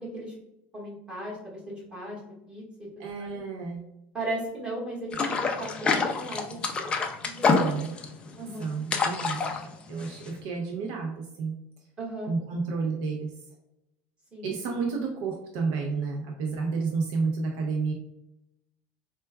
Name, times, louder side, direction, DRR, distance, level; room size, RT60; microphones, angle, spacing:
voice 1, 0.7-2.2 2.5-2.6 3.0-3.3 4.1-6.6 7.2-7.8 8.4-8.6 12.0-12.3 14.3-14.5, right 1 dB, 20° right, -6 dB, 1.4 m, -36 dB
voice 2, 3.0-3.8 7.5-7.9 8.6-9.6 9.9-11.5 12.2-13.3 14.4-17.9, right 4 dB, 65° right, 1 dB, 0.5 m, -31 dB
sound 1, 5.1-10.4, left 4 dB, 20° left, 0.3 m, -27 dB
4.3 x 2.2 x 2.2 m, 0.87 s
cardioid pair, 155°, 5 cm